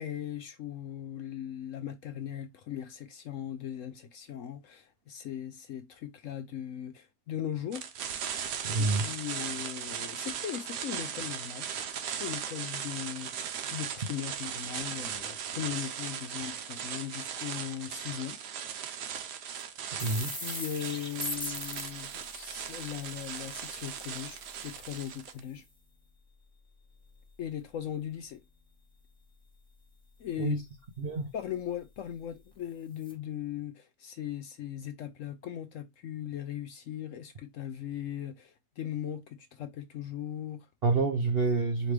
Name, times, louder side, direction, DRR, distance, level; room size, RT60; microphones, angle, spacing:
voice 1, 0.0-7.9 8.3-8.4 8.8-11.7 12.0-18.4 20.3-25.6 27.4-28.4 30.2-30.6 31.3-40.7, left 10 dB, 65° left, 0.8 m, -39 dB
sound 1, 7.7-25.4, right 8 dB, 85° right, 1.3 m, -38 dB
voice 2, 8.6-9.0 20.0-20.4 30.4-30.6 31.0-31.3 40.8-41.9, right 3 dB, 55° right, 0.6 m, -28 dB
sound 2, 19.6-19.7 20.0-25.6 32.5-32.6 33.0-33.1, left 1 dB, 5° left, 1.2 m, -42 dB
4.9 x 3.2 x 3.2 m
omnidirectional pair, 1.7 m